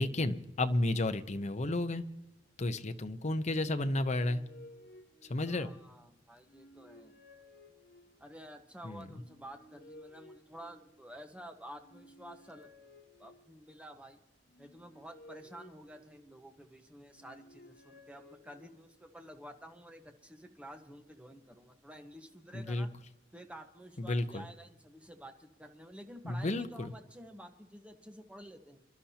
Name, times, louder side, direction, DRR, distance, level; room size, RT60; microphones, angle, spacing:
voice 1, 0.0-2.0 2.6-4.4 5.3-5.7 8.8-9.1 22.5-22.9 24.0-24.4 26.2-26.9, left 2 dB, 40° left, 9 dB, 0.8 m, -32 dB
sound 1, 3.8-5.9 6.4-8.4 9.1-11.3 11.7-13.8 14.5-16.6 17.1-19.1, left 1 dB, 60° left, 1.3 m, -57 dB
voice 2, 5.5-7.2 8.2-12.7 13.2-14.2 14.6-22.9 23.3-28.8, equal, 5° right, 5 dB, 1.2 m, -51 dB
27.0 x 11.5 x 2.9 m, 0.91 s
head